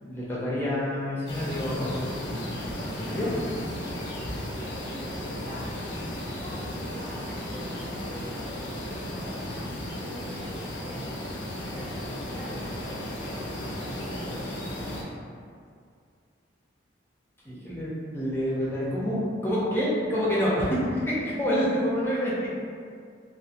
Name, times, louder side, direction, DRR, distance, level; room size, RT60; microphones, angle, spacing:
voice 1, 0.0-2.4 2.8-3.6 4.0-4.3 17.4-22.5, equal, 10° left, -8 dB, 0.5 m, -28 dB
sound 1, 1.3-15.0, left 1 dB, 65° left, 0.5 m, -35 dB
voice 2, 4.4-15.2, equal, 35° right, -18 dB, 1.0 m, -45 dB
2.8 x 2.3 x 2.4 m, 2.2 s
head